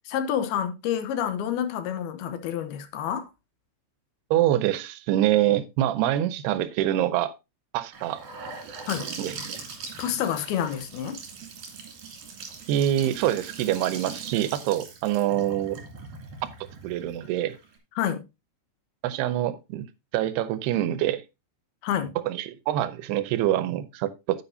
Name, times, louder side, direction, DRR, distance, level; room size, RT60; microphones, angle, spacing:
voice 1, 0.1-3.3 8.9-9.1 10.0-11.2 18.0-18.2 21.8-22.1, left 9 dB, 80° left, 2.9 m, -28 dB
voice 2, 4.3-7.3 7.7-8.2 9.2-9.6 12.7-15.8 16.8-17.6 19.0-19.9 20.1-21.2 22.3-24.4, right 12 dB, 85° right, 2.8 m, -25 dB
Gurgling / Sink (filling or washing) / Bathtub (filling or washing), 7.9-17.8, right 5 dB, 55° right, 3.7 m, -41 dB
9.7 x 8.8 x 2.7 m
omnidirectional pair, 4.5 m